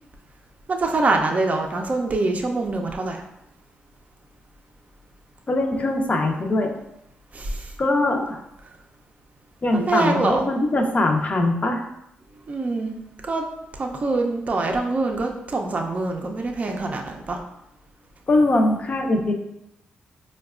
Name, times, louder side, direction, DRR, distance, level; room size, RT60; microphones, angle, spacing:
voice 1, 0.7-3.2 7.3-7.7 9.7-10.4 12.5-12.9 13.2-13.4 13.7-17.4, right 3 dB, 40° right, 2 dB, 0.5 m, -24 dB
voice 2, 5.5-6.7 7.8-8.4 9.6-11.8 18.3-19.3, left 2 dB, 40° left, 3 dB, 0.6 m, -21 dB
4.6 x 2.2 x 2.4 m, 0.84 s
cardioid pair, 65°, 4 cm